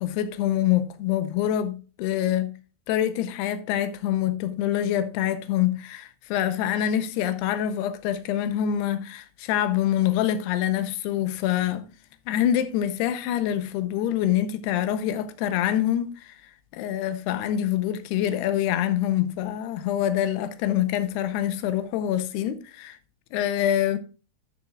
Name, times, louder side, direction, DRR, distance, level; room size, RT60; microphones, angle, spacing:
voice 1, 0.0-2.5 2.9-11.8 12.3-16.4 16.7-23.0 23.3-24.0, left 11 dB, 80° left, 2.4 m, -25 dB
13.0 x 7.0 x 2.4 m
omnidirectional pair, 5.5 m